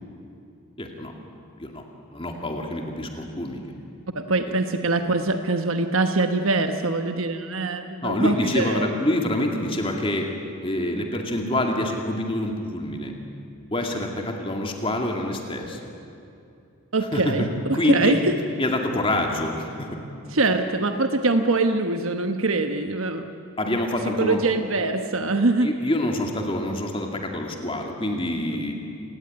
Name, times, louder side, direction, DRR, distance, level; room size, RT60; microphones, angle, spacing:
voice 1, 0.8-1.1 1.6-1.8 2.1-3.6 8.0-10.3 10.6-13.1 13.7-15.8 17.0-18.2 18.6-20.0 23.6-24.4 25.6-28.7, left 1 dB, 25° left, 2 dB, 2.3 m, -26 dB
voice 2, 4.1-8.9 16.9-18.4 20.3-23.3 24.2-25.7, right 3 dB, 70° right, 7 dB, 1.2 m, -23 dB
28.0 x 18.0 x 9.7 m, 2.7 s
head